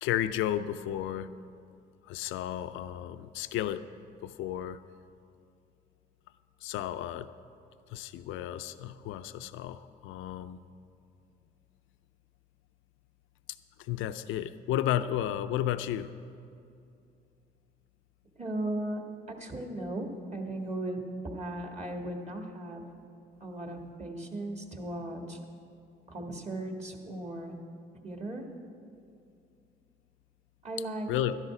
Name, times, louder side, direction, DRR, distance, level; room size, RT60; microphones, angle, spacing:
voice 1, 0.0-1.3 2.0-3.9 4.2-4.8 6.6-7.3 7.9-10.6 13.8-16.1 31.1-31.4, left 11 dB, 90° left, 12 dB, 0.4 m, -33 dB
voice 2, 18.3-19.0 19.3-21.0 21.3-22.8 23.4-25.4 26.1-27.6 28.0-28.4 30.6-31.1, right 1 dB, 35° right, 2 dB, 1.7 m, -37 dB
12.5 x 10.5 x 4.9 m, 2.5 s
cardioid pair, 90°, 20 cm